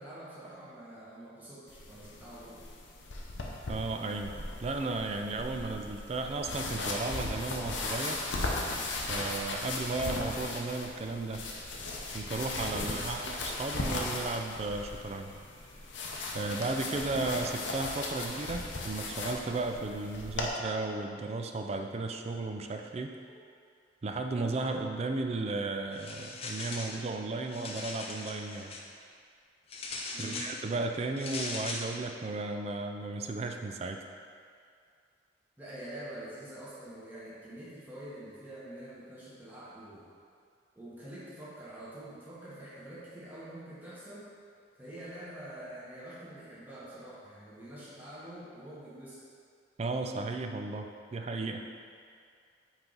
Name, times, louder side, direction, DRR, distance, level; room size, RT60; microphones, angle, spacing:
voice 1, 0.0-2.6 12.8-13.1 23.3-23.4 30.1-30.5 35.6-40.1 40.7-44.3 44.8-49.2, right 1 dB, 10° right, -10 dB, 1.1 m, -46 dB
sound 1, 1.7-20.5, left 2 dB, 80° left, 0.8 m, -37 dB
voice 2, 3.7-8.2 9.1-11.4 12.1-15.3 16.3-23.2 24.0-28.7 30.2-34.0 49.8-51.6, right 3 dB, 35° right, 5 dB, 0.3 m, -34 dB
sound 2, 25.9-27.0 27.4-28.8 29.7-30.6 31.2-31.9, left 3 dB, 30° left, 0.5 m, -39 dB
5.6 x 4.5 x 3.9 m, 2.2 s
head